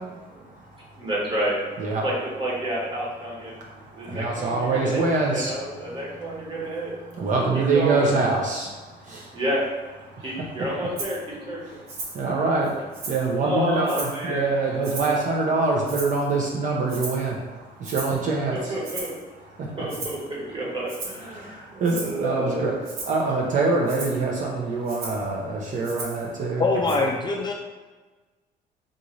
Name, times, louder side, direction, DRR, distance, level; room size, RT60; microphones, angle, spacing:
voice 1, 0.0-1.0 1.8-2.0 3.5-6.7 7.1-9.4 10.1-10.4 11.6-18.8 19.5-19.8 21.3-22.7 23.1-27.0, right 3 dB, 50° right, -2 dB, 0.6 m, -26 dB
voice 2, 1.0-1.6 2.0-3.5 3.9-6.9 7.5-8.1 9.3-9.6 10.2-11.8 13.3-14.6 18.5-19.1 19.8-22.7 26.3-26.4, right 1 dB, 30° right, -5 dB, 1.3 m, -30 dB
Rattle (instrument), 11.0-11.2 11.9-12.2 12.6-13.3 13.8-14.2 14.8-15.2 15.9-16.3 16.9-17.3 17.8-18.2 18.8-19.2 19.9-20.2 20.9-21.3 21.8-22.2 22.8-23.2 23.9-24.2 24.9-25.2 25.8-26.3 26.9-27.0, right 3 dB, 65° right, 0.9 m, -36 dB
voice 3, 26.6-27.5, left 3 dB, 25° left, 0 dB, 0.4 m, -23 dB
3.8 x 2.5 x 3.0 m, 1.3 s
cardioid pair, 110°, 17 cm